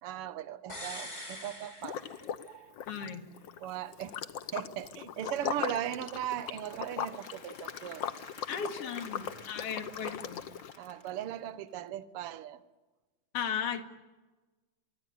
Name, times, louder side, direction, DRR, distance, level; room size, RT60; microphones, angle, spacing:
voice 1, 0.0-3.2 3.6-4.1 4.5-8.1 9.2-9.4 10.8-12.6, right 11 dB, 60° right, 13 dB, 1.7 m, -39 dB
sound 1, 0.7-2.6 2.9-3.0, left 1 dB, 10° left, 3.7 m, -44 dB
Liquid, 1.8-2.5 2.7-10.7, left 9 dB, 85° left, 1.0 m, -39 dB
voice 2, 2.9-3.2 8.5-10.4 13.3-13.8, left 7 dB, 50° left, 6 dB, 2.8 m, -36 dB
Applause / Crowd, 5.8-11.9, left 4 dB, 30° left, 1.7 m, -52 dB
25.5 x 23.5 x 9.5 m, 1.2 s
omnidirectional pair, 3.5 m